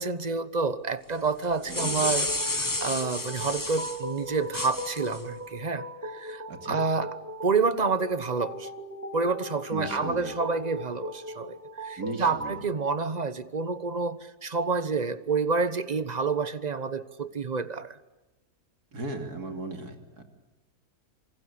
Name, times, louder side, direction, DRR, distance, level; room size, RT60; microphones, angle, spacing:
voice 1, 0.0-7.1 7.4-8.7 9.1-18.0, right 4 dB, 30° right, 1.1 m, -29 dB
sound 1, 1.4-4.0 4.5-5.2, left 2 dB, 15° left, 1.2 m, -31 dB
sound 2, 1.6-12.6, equal, 10° right, 4.1 m, -39 dB
voice 2, 1.7-2.0 6.5-6.8 9.7-10.3 12.0-12.6 18.9-20.2, right 3 dB, 80° right, 3.4 m, -36 dB
27.5 x 25.5 x 8.4 m
omnidirectional pair, 1.6 m